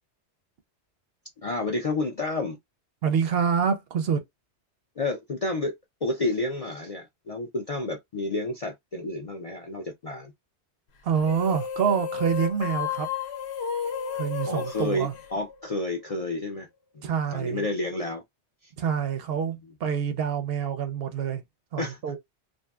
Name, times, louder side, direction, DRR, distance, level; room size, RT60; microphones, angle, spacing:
voice 1, 1.4-2.6 5.0-5.7 6.0-10.3 14.5-16.7 17.3-18.2 19.4-19.6 21.8-22.2, left 2 dB, 50° left, 0.4 m, -30 dB
voice 2, 3.0-4.2 11.0-13.1 14.1-15.1 17.0-17.6 18.8-21.4 21.7-22.2, right 7 dB, 65° right, 0.7 m, -26 dB
sound 1, 11.2-15.9, left 7 dB, 70° left, 0.9 m, -32 dB
2.6 x 2.5 x 2.2 m
omnidirectional pair, 1.2 m